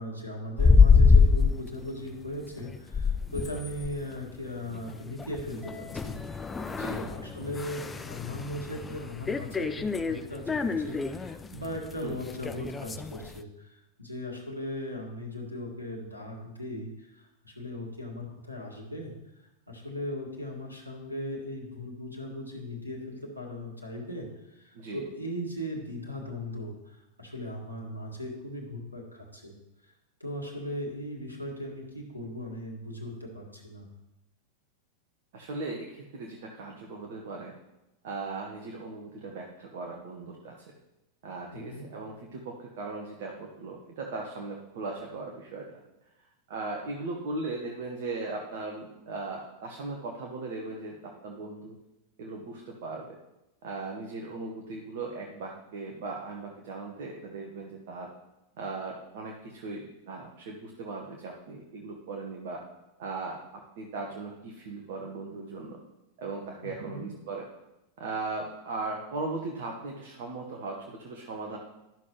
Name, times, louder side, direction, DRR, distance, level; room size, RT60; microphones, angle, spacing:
voice 1, 0.0-19.1 19.7-29.5 29.8-29.9 30.2-33.9 41.5-41.9 66.6-67.1, left 1 dB, 90° right, 0 dB, 1.7 m, -38 dB
sound 1, 0.6-1.6 2.1-2.3 2.6-13.4, left 5 dB, 15° left, 0.4 m, -25 dB
voice 2, 6.7-7.0 12.0-12.2 24.7-25.0 35.3-37.5 38.0-40.5 41.2-45.8 46.5-51.8 52.2-53.2 53.6-58.1 58.6-62.6 63.0-65.8 66.2-67.4 68.0-71.6, right 3 dB, 50° right, 0 dB, 1.1 m, -38 dB
12.0 x 6.3 x 3.0 m, 0.96 s
figure-of-eight pair, 90°, 0 cm